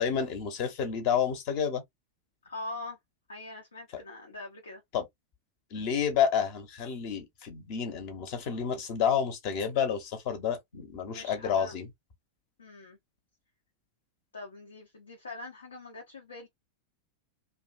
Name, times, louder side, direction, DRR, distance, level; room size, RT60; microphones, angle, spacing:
voice 1, 0.0-1.8 4.9-5.1 5.7-11.9, left 7 dB, 45° left, 0.8 m, -29 dB
voice 2, 2.4-3.0 3.3-4.8 10.7-11.7 12.6-13.0 14.3-16.5, left 2 dB, 75° left, 0.7 m, -43 dB
2.6 x 2.2 x 2.4 m
figure-of-eight pair, 90°, 0 cm